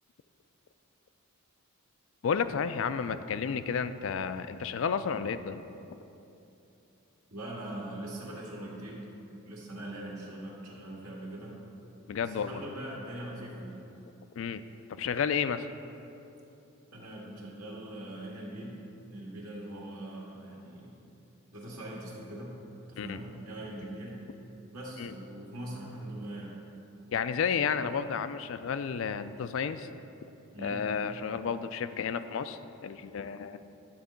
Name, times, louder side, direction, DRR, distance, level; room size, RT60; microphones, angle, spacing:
voice 1, 2.2-5.6 12.1-12.6 14.4-14.6 14.9-15.7 23.0-23.2 25.0-25.1 27.1-29.9 30.6-33.6, left 6 dB, 60° left, 12 dB, 0.3 m, -31 dB
voice 2, 7.3-9.1 9.4-11.6 12.2-13.8 16.9-18.8 19.1-21.0 21.5-22.6 22.9-24.2 24.7-26.6 30.5-30.8, right 1 dB, 80° right, -4 dB, 1.9 m, -41 dB
10.5 x 3.7 x 7.0 m, 2.8 s
head